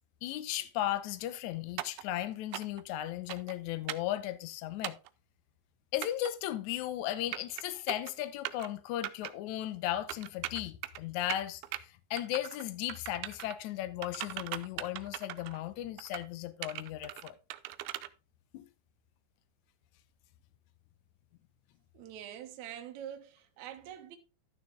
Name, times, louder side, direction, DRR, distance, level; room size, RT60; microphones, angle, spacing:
voice 1, 0.2-5.0 5.9-17.3 18.5-18.7, left 13 dB, 80° left, 1.7 m, -36 dB
sound 1, 1.8-2.0 2.5-2.8 3.3-3.6 3.9-4.1 4.8-5.1 6.0-6.3 7.1-7.6 7.9-8.1 8.5-8.7 9.0-9.3 10.1-11.0 11.3-11.8 12.2-12.6 12.9-13.6 14.0-15.6 16.0-16.3 16.6-18.1, right 16 dB, 90° right, 2.5 m, -39 dB
voice 2, 21.9-24.2, right 10 dB, 65° right, 2.0 m, -45 dB
11.5 x 6.6 x 3.5 m
omnidirectional pair, 4.3 m